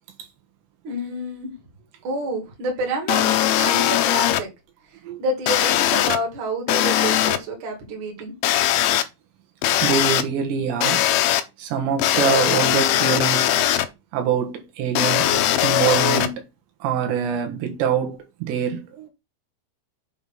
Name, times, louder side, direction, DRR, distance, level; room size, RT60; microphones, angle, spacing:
voice 1, 0.8-1.5 2.0-3.3 3.6-4.5 4.9-8.3 15.3-15.5, right 1 dB, 50° right, 3.2 m, -28 dB
sound 1, 3.1-4.4 5.5-6.2 6.7-7.4 8.4-9.0 9.6-10.2 10.8-11.4 12.0-13.9 14.9-16.3, left 12 dB, 80° left, 2.4 m, -20 dB
voice 2, 9.8-11.1 11.6-13.6 14.1-15.3 15.6-16.4 16.8-19.1, right 7 dB, 75° right, 3.5 m, -24 dB
7.8 x 3.6 x 5.9 m
omnidirectional pair, 5.1 m